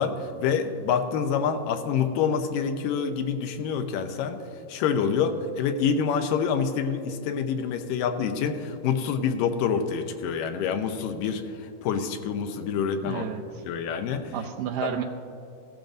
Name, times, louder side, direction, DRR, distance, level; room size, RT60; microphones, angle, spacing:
voice 1, 0.0-4.4 4.7-11.4 11.8-13.2 13.7-14.2 14.8-15.0, left 6 dB, 85° left, 7 dB, 2.3 m, -27 dB
voice 2, 13.0-13.6 14.3-15.0, right 8 dB, 80° right, 2 dB, 2.1 m, -31 dB
16.5 x 12.0 x 2.6 m, 2.5 s
omnidirectional pair, 4.0 m